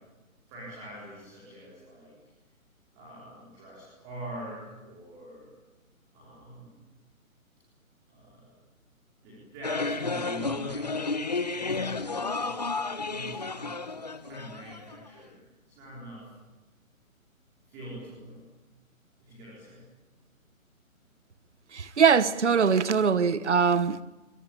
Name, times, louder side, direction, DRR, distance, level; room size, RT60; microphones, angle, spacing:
voice 1, 0.5-2.1 2.9-5.5 6.1-6.8 8.1-8.5 9.2-10.9 11.5-12.5 13.0-14.0 14.2-15.4 15.8-16.3 17.7-18.4 19.2-19.9, right 1 dB, 10° right, 4.8 m, -44 dB
sound 1, 9.6-15.1, left 3 dB, 30° left, 1.0 m, -32 dB
voice 2, 21.7-24.0, right 6 dB, 55° right, 1.3 m, -22 dB
28.0 x 24.0 x 8.8 m
hypercardioid pair, 180°, 42 cm